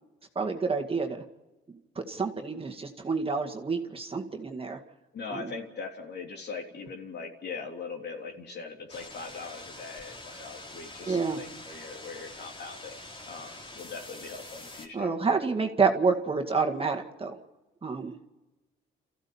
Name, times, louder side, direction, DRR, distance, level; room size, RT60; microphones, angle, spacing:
voice 1, 0.4-1.2 2.0-4.8 5.3-5.5 11.1-11.4 14.9-17.4 17.8-18.1, right 4 dB, 30° right, 4 dB, 2.1 m, -28 dB
voice 2, 5.1-13.0 13.3-15.1, left 4 dB, 55° left, 2 dB, 3.5 m, -41 dB
sound 1, 8.9-14.9, left 2 dB, 25° left, 3.3 m, -45 dB
28.5 x 15.0 x 7.2 m, 1.1 s
cardioid pair, 90°, 20 cm